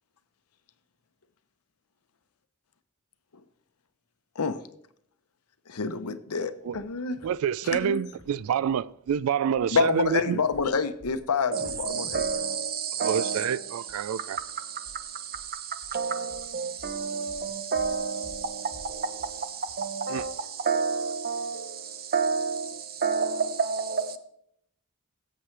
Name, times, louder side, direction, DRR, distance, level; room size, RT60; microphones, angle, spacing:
voice 1, 5.7-7.2 7.6-8.0 9.7-12.2, left 5 dB, 85° left, 0.8 m, -27 dB
sound 1, 6.7-6.9 7.1-7.4 7.6-7.9 8.1-8.3 8.6-8.8 9.1-9.2 9.6-9.7 10.0-10.1 10.5-10.7 11.0-11.2 11.5-13.5 13.9-14.0 14.4-14.5 14.9-15.0 15.3-15.5 15.8-16.0 16.3-16.5 16.8-17.0 17.3-17.5 17.8-18.0 18.2-18.5 18.7-18.9 19.2-19.4 19.7-19.8 20.2-20.3, equal, 45° left, 1.3 m, -49 dB
voice 2, 7.2-10.4 13.0-14.4 20.1-20.2, right 8 dB, 70° right, 0.3 m, -27 dB
voice 3, 11.5-24.2, right 5 dB, 45° right, 0.8 m, -30 dB
17.0 x 7.6 x 3.3 m
head